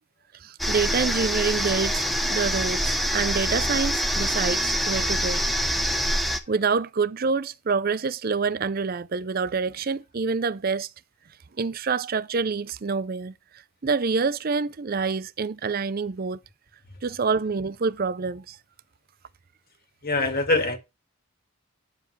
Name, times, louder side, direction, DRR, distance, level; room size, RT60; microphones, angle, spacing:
voice 1, 0.4-5.5 6.5-10.9 11.6-13.3 13.8-16.4 17.0-18.6, right 5 dB, 40° right, 0.5 m, -27 dB
sound 1, 0.6-6.4, equal, ahead, 0.9 m, -25 dB
voice 2, 20.0-20.8, left 2 dB, 45° left, 1.9 m, -23 dB
9.9 x 7.3 x 3.2 m
head